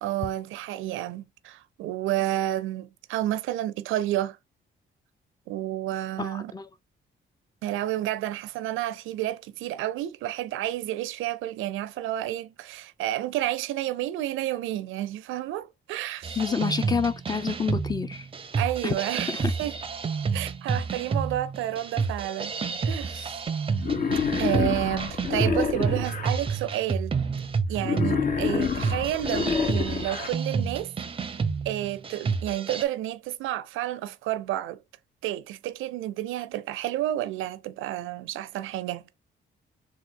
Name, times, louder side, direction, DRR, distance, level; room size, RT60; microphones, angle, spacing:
voice 1, 0.0-4.4 5.5-6.5 7.6-16.4 18.6-19.7 20.3-22.5 22.8-23.4 24.4-27.2 27.7-30.9 31.3-34.8 35.2-39.0, right 13 dB, 85° right, 0.4 m, -30 dB
voice 2, 6.2-6.7 16.4-18.3 18.8-18.9 19.3-19.5, left 5 dB, 20° left, 0.5 m, -28 dB
sound 1, 16.2-32.8, right 5 dB, 25° right, 0.5 m, -30 dB
Wild animals, 23.8-26.3 27.8-30.3, left 5 dB, 45° left, 0.8 m, -27 dB
3.6 x 2.4 x 4.3 m
cardioid pair, 90°, 20 cm